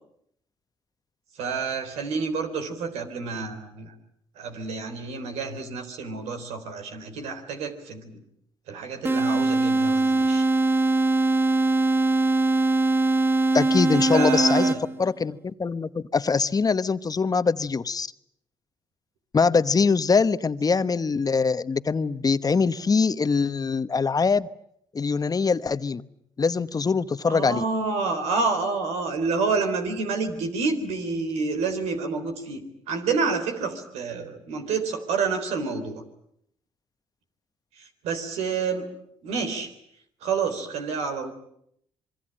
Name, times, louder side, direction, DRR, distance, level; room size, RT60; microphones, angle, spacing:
voice 1, 1.4-3.9 4.4-8.2 8.7-10.5 13.9-14.8 27.3-36.0 37.8-38.9 39.2-39.7 40.2-41.3, right 4 dB, 85° right, 7 dB, 3.7 m, -29 dB
sound 1, 9.0-15.1, right 2 dB, 20° right, 1.2 m, -22 dB
voice 2, 13.5-14.7 15.0-18.1 19.3-24.5 24.9-26.0 26.4-27.6, left 5 dB, 35° left, 13 dB, 1.1 m, -23 dB
26.5 x 22.0 x 8.8 m, 0.73 s
supercardioid pair, 60°, 11 cm